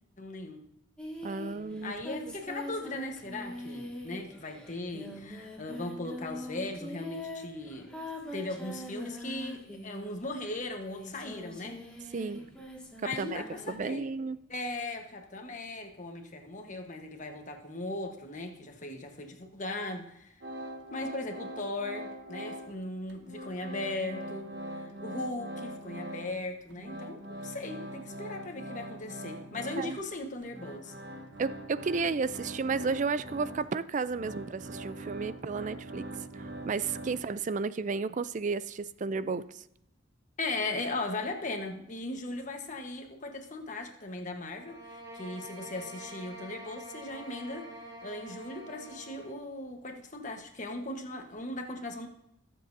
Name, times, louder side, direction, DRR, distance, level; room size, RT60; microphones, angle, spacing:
voice 1, 0.2-0.6 1.8-7.9 8.3-11.8 13.0-14.1 14.5-20.3 20.9-24.5 25.0-30.9 40.4-47.7 48.0-52.1, left 2 dB, 40° left, 4 dB, 1.2 m, -38 dB
Singing, 1.0-10.3 10.8-13.8, left 1 dB, 5° left, 2.0 m, -43 dB
voice 2, 1.2-1.9 2.3-2.4 12.1-12.4 13.2-14.4 29.8-30.0 31.4-36.1 36.3-39.6, right 4 dB, 40° right, 16 dB, 0.4 m, -33 dB
sound 1, 20.4-22.8 23.1-26.4 26.7-37.6, right 1 dB, 65° right, 1.3 m, -42 dB
sound 2, 44.6-49.4, right 1 dB, 20° right, 1.8 m, -46 dB
21.0 x 7.5 x 2.7 m, 0.81 s
head